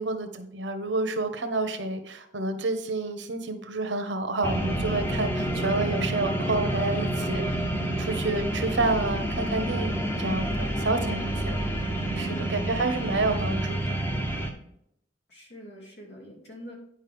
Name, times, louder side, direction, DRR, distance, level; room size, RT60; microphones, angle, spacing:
voice 1, 0.0-7.4 8.0-11.6 12.2-14.0, right 3 dB, 80° right, 8 dB, 1.0 m, -29 dB
sound 1, 4.4-14.5, right 1 dB, 10° left, 0.9 m, -29 dB
voice 2, 12.0-12.6 15.3-16.7, equal, 65° left, -2 dB, 2.8 m, -43 dB
10.0 x 5.3 x 3.5 m, 0.74 s
head